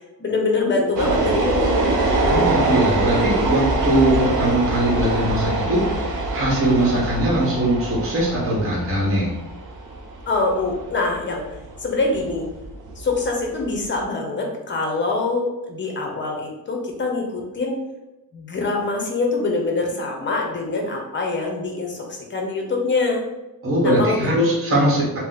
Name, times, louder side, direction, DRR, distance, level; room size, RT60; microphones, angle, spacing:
voice 1, 0.2-1.7 10.3-12.5 13.0-17.8 18.3-23.2 23.8-24.3, left 3 dB, 30° left, 1 dB, 0.7 m, -24 dB
sound 1, 1.0-14.0, right 2 dB, 55° right, 0.6 m, -24 dB
voice 2, 2.3-9.3 23.6-25.2, right 1 dB, 35° right, -5 dB, 1.1 m, -21 dB
2.7 x 2.1 x 4.0 m, 0.98 s
cardioid pair, 120°, 37 cm